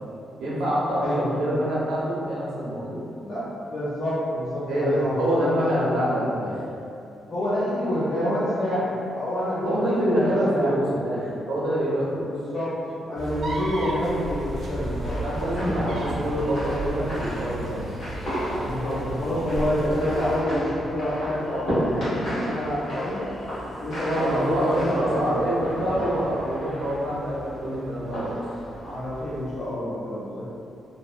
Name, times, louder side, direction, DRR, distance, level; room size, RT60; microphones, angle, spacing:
voice 1, 0.4-3.0 4.7-6.5 9.6-12.3 15.2-17.8 24.1-28.3, right 1 dB, 80° right, -7 dB, 0.7 m, -26 dB
voice 2, 3.2-6.3 7.3-10.7 12.3-15.2 18.6-23.3 23.8-25.4 28.8-30.4, left 1 dB, 40° left, -12 dB, 0.5 m, -27 dB
sound 1, 13.2-20.4, right 1 dB, 45° right, 0.4 m, -33 dB
sound 2, 15.0-29.7, equal, 60° left, 1.2 m, -34 dB
2.7 x 2.0 x 2.4 m, 2.6 s
wide cardioid pair, 175°, 0 cm